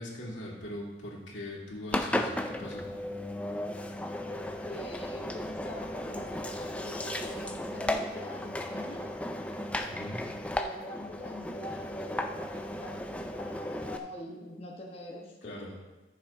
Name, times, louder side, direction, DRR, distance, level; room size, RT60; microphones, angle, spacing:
voice 1, 0.0-2.9 9.9-10.2 15.4-15.7, left 1 dB, 90° left, -3 dB, 2.6 m, -40 dB
Engine, 1.9-14.0, left 1 dB, 5° left, 0.5 m, -35 dB
voice 2, 4.2-9.1 10.5-15.8, left 1 dB, 30° left, -2 dB, 1.3 m, -44 dB
14.0 x 7.1 x 3.7 m, 1.1 s
head